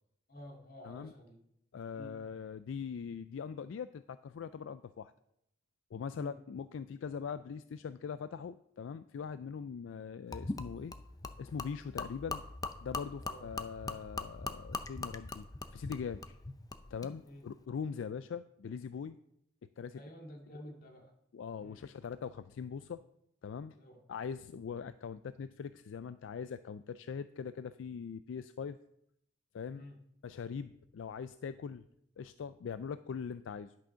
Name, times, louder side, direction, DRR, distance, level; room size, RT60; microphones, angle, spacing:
voice 1, 0.3-1.4 1.9-2.1 6.2-6.4 13.2-13.4 17.3-17.5 19.9-21.1 21.6-21.8 23.7-24.0 29.8-30.0, equal, 50° left, 2 dB, 2.1 m, -50 dB
voice 2, 1.7-5.1 5.9-10.9 11.4-12.4 12.8-15.5 15.7-16.4 16.9-19.2 19.8-20.0 20.5-20.6 21.3-23.0 23.4-23.8 24.1-28.8 29.5-29.8 30.2-31.8 32.2-33.7, left 6 dB, 75° left, 13 dB, 0.3 m, -41 dB
Gurgling / Liquid, 10.3-17.1, left 3 dB, 20° left, 0.6 m, -41 dB
11.0 x 6.4 x 5.6 m, 0.77 s
head